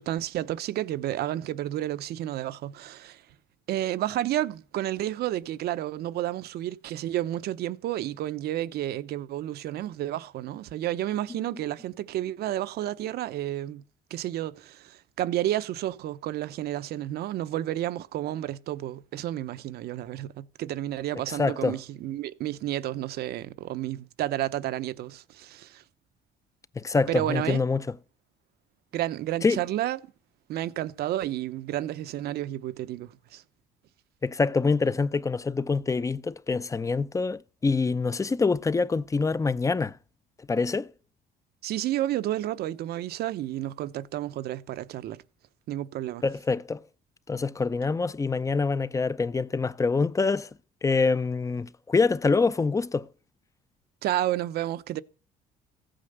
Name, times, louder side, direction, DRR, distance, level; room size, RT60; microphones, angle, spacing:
voice 1, 0.0-3.2 3.7-13.8 14.1-25.8 27.1-27.6 28.9-30.0 30.5-33.4 41.6-45.2 45.7-46.2 54.0-55.0, right 13 dB, 70° right, 0.9 m, -31 dB
voice 2, 21.3-21.8 26.8-27.8 29.4-29.6 34.2-39.9 40.5-40.9 46.2-46.8 47.3-50.5 50.8-53.1, left 4 dB, 20° left, 0.6 m, -25 dB
15.5 x 8.9 x 6.7 m
cardioid pair, 110°, 17 cm